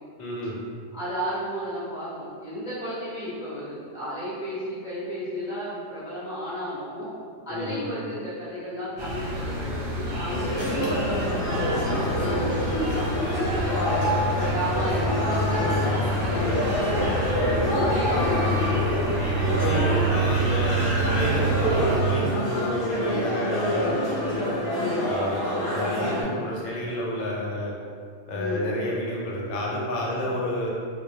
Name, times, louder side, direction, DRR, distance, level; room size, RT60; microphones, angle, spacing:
voice 1, 0.2-0.6 7.5-7.8 10.5-10.9 16.3-16.6 19.4-24.5 25.1-25.4 25.7-27.7 28.3-30.7, equal, 90° left, -3 dB, 0.9 m, -30 dB
voice 2, 0.9-7.1 7.4-11.3 11.9-13.1 13.5-19.5 24.8-25.1 26.3-26.5 28.3-28.7 30.2-30.3, equal, 5° right, -12 dB, 0.6 m, -33 dB
sound 1, 9.0-22.0, right 1 dB, 75° right, 0.3 m, -27 dB
sound 2, 10.3-26.2, equal, 55° left, 0.7 m, -27 dB
2.2 x 2.1 x 2.6 m, 2.2 s
omnidirectional pair, 1.3 m